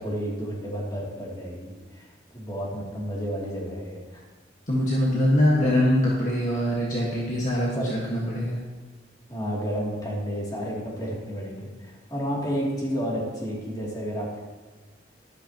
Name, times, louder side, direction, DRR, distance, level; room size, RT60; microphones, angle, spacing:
voice 1, 0.0-2.1 2.3-4.2 7.8-7.9 9.3-14.4, equal, 20° left, -5 dB, 2.8 m, -31 dB
voice 2, 4.7-8.6, left 1 dB, 40° left, -4 dB, 1.6 m, -23 dB
13.0 x 11.5 x 3.0 m, 1.3 s
head